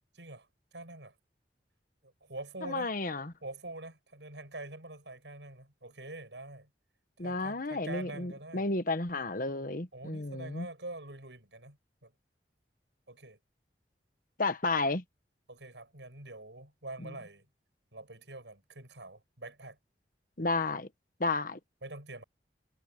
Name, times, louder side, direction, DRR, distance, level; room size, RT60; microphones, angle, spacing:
voice 1, 0.1-1.1 2.0-2.9 3.4-6.7 7.2-8.7 9.9-12.1 13.1-13.4 15.5-17.5 17.9-19.8 21.8-22.2, right 2 dB, 85° right, 7.6 m, -45 dB
voice 2, 2.6-3.3 7.2-10.7 14.4-15.0 17.0-17.1 20.4-20.9 21.2-21.6, left 3 dB, 50° left, 1.3 m, -32 dB
head